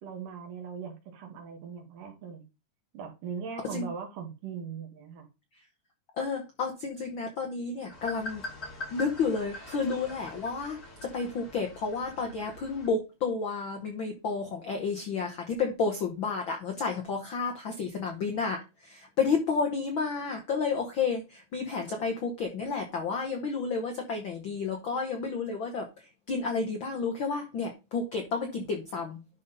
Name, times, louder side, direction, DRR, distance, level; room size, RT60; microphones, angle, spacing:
voice 1, 0.0-2.4 2.9-5.3, right 6 dB, 85° right, 2 dB, 3.2 m, -40 dB
voice 2, 6.2-8.4 8.9-25.9 26.3-29.2, left 4 dB, 75° left, 2 dB, 1.1 m, -31 dB
sound 1, 7.9-12.9, left 1 dB, 30° left, 2.5 m, -43 dB
11.0 x 4.0 x 4.0 m, 0.27 s
omnidirectional pair, 3.6 m